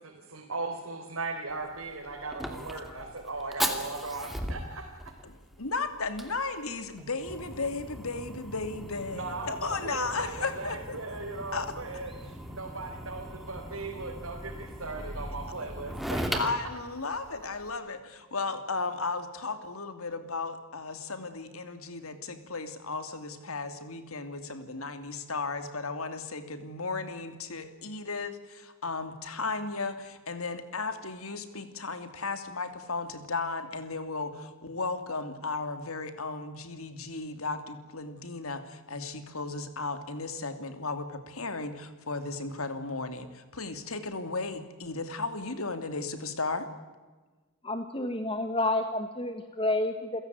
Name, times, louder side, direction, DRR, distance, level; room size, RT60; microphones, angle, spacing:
voice 1, 0.0-4.9 9.1-16.4, right 3 dB, 75° right, 0 dB, 4.2 m, -38 dB
Fire, 1.5-17.7, equal, ahead, 2.6 m, -39 dB
voice 2, 5.2-11.0 11.5-11.7 16.4-46.7, left 3 dB, 85° left, 9 dB, 2.7 m, -35 dB
voice 3, 47.6-50.2, left 2 dB, 25° left, 7 dB, 1.4 m, -29 dB
29.0 x 16.5 x 9.5 m, 1.3 s
head